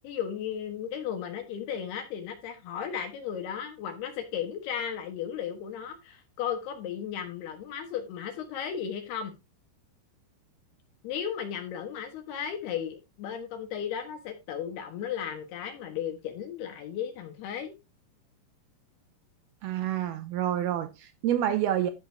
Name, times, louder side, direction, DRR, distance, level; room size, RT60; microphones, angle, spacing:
voice 1, 0.0-9.3 11.0-17.7, left 8 dB, 70° left, 3.3 m, -35 dB
voice 2, 19.6-21.9, right 11 dB, 80° right, 2.4 m, -28 dB
13.0 x 5.0 x 3.4 m
omnidirectional pair, 4.9 m